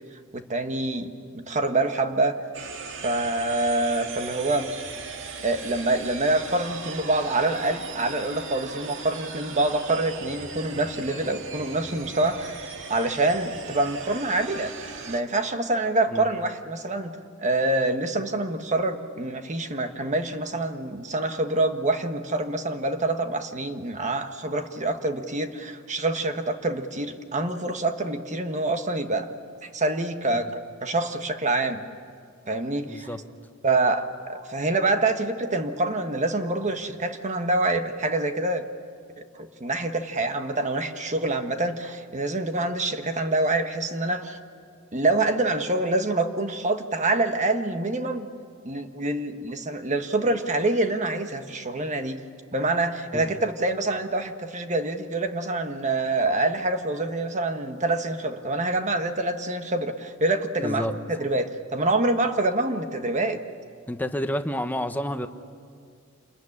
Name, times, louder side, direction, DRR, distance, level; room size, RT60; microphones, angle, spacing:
voice 1, 0.3-2.4 3.0-4.7 5.4-12.6 12.9-14.7 15.1-29.3 29.7-30.5 30.8-31.8 32.5-33.1 33.6-38.6 39.4-44.4 44.9-48.3 48.6-52.2 52.5-63.4, right 2 dB, 35° right, 7 dB, 1.4 m, -26 dB
sound 1, 2.5-15.2, right 5 dB, 60° right, 1.9 m, -38 dB
voice 2, 32.9-33.2 53.1-53.2 60.6-60.9 63.9-65.3, left 1 dB, 10° left, 7 dB, 1.1 m, -29 dB
28.0 x 21.5 x 9.9 m, 2.2 s
head